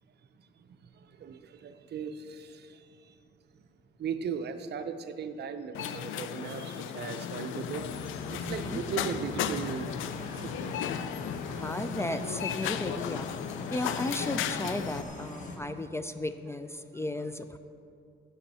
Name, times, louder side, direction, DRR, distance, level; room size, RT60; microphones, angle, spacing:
voice 1, 1.2-2.8 4.0-7.9 8.3-10.8, right 6 dB, 55° right, 9 dB, 0.6 m, -37 dB
sound 1, 5.7-15.0, left 9 dB, 80° left, 0.4 m, -35 dB
sound 2, 7.7-15.6, left 2 dB, 40° left, 1.2 m, -41 dB
voice 2, 8.5-8.8 11.5-13.4 13.7-17.6, left 1 dB, 15° left, 10 dB, 0.3 m, -35 dB
9.9 x 7.0 x 4.2 m, 2.5 s
cardioid pair, 90°, 20 cm